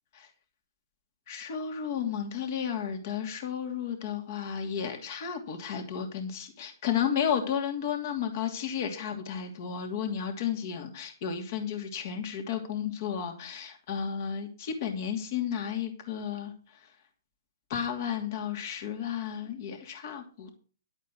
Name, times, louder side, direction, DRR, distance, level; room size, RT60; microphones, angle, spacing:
voice 1, 1.3-16.5 17.7-20.6, left 8 dB, 45° left, 5 dB, 2.8 m, -33 dB
11.5 x 8.2 x 6.2 m, 0.40 s
hypercardioid pair, 145°, 2 cm